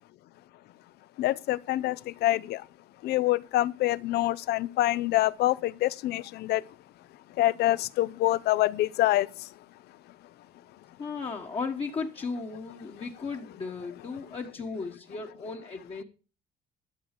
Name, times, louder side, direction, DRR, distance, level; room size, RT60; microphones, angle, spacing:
voice 1, 1.2-2.6 3.0-6.6 7.4-9.3, left 15 dB, 75° left, 0.6 m, -26 dB
voice 2, 11.0-16.0, left 4 dB, 35° left, 1.4 m, -35 dB
12.5 x 6.3 x 6.7 m
cardioid pair, 110°, 17 cm